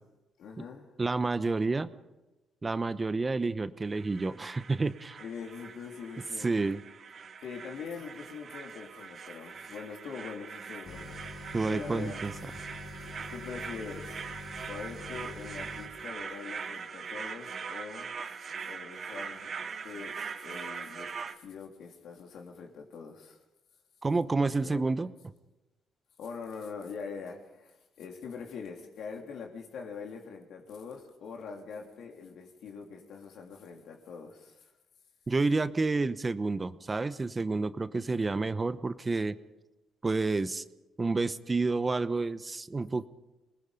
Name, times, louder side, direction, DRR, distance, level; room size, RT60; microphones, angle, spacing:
voice 1, 0.4-0.9 5.2-6.7 7.4-11.2 11.6-12.3 12.8-14.3 14.7-19.5 19.8-23.4 24.6-24.8 26.2-34.6 38.0-38.3, left 5 dB, 75° left, 3.4 m, -43 dB
voice 2, 1.0-1.9 2.6-5.2 6.4-6.8 11.5-12.3 24.0-25.1 35.3-39.4 40.0-40.6 41.0-43.0, right 3 dB, 25° right, 0.9 m, -29 dB
sound 1, 3.8-21.3, right 6 dB, 50° right, 1.4 m, -42 dB
sound 2, 10.8-15.9, left 2 dB, 55° left, 3.7 m, -45 dB
26.5 x 20.0 x 5.2 m
cardioid pair, 90°, 0 cm